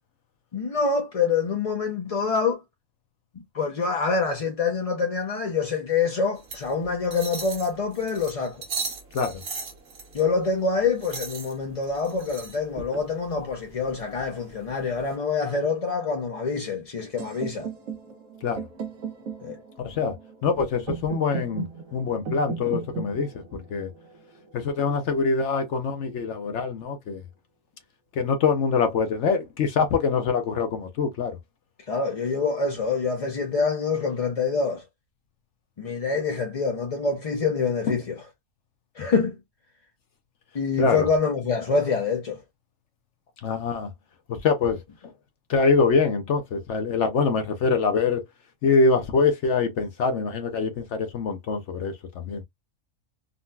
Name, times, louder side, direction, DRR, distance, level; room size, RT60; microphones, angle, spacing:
voice 1, 0.5-2.6 3.5-8.6 10.1-17.7 19.4-19.6 31.9-34.8 35.8-38.2 39.0-39.4 40.5-42.4, left 4 dB, 50° left, 0.4 m, -26 dB
sound 1, 6.4-15.1, right 5 dB, 60° right, 1.2 m, -39 dB
sound 2, 17.2-25.1, right 5 dB, 85° right, 1.0 m, -37 dB
voice 2, 19.8-20.2 20.4-21.7 21.9-23.4 23.7-23.9 24.5-27.2 28.2-31.4 37.9-38.0 40.8-41.1 43.4-43.9 44.3-44.8 45.5-48.2 48.6-52.4, left 4 dB, 70° left, 0.9 m, -24 dB
3.8 x 2.1 x 2.2 m
omnidirectional pair, 1.3 m